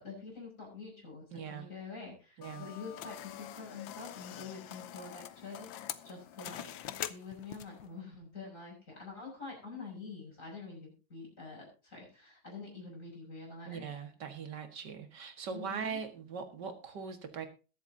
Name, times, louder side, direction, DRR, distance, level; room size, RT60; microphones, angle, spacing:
voice 1, 0.0-5.7 6.0-6.7 7.1-13.9 15.5-16.0, left 4 dB, 40° left, -1 dB, 6.5 m, -46 dB
voice 2, 1.3-1.7 2.4-2.7 13.7-17.5, right 6 dB, 60° right, 6 dB, 2.3 m, -41 dB
sound 1, 2.4-7.9, left 12 dB, 75° left, 1.5 m, -44 dB
21.5 x 8.3 x 2.8 m, 0.33 s
omnidirectional pair, 2.2 m